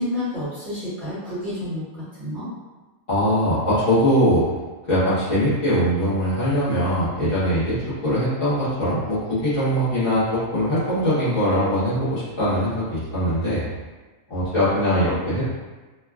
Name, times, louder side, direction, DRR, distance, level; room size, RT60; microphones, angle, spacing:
voice 1, 0.0-2.5, left 1 dB, 40° right, -11 dB, 1.1 m, -29 dB
voice 2, 3.1-4.4 4.9-13.7 14.3-15.4, equal, 45° left, -12 dB, 1.1 m, -21 dB
3.1 x 2.2 x 2.3 m, 1.2 s
omnidirectional pair, 1.4 m